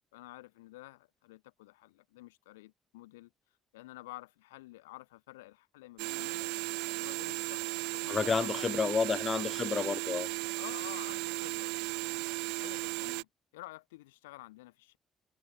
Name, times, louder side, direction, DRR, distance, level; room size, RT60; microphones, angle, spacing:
voice 1, 0.1-3.3 3.7-6.5 7.0-8.9 10.6-11.7 12.6-13.3 13.5-15.0, left 19 dB, 85° left, 3.0 m, -50 dB
sound 1, 6.0-13.2, right 31 dB, 80° right, 0.7 m, -36 dB
voice 2, 8.1-10.3, left 5 dB, 40° left, 1.2 m, -30 dB
hypercardioid pair, 45°, 0 cm